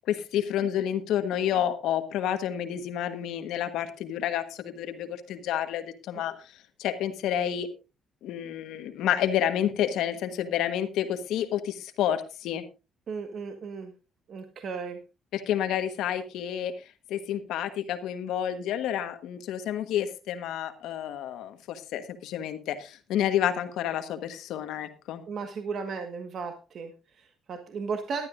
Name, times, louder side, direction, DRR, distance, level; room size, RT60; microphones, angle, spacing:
voice 1, 0.1-6.5 6.8-7.7 8.2-12.6 15.3-16.7 17.1-25.2, left 10 dB, 85° left, 8 dB, 1.3 m, -29 dB
voice 2, 13.1-13.9 14.3-15.0 25.3-28.3, right 5 dB, 50° right, 6 dB, 1.5 m, -35 dB
17.0 x 12.0 x 2.6 m, 0.29 s
cardioid pair, 115°, 0 cm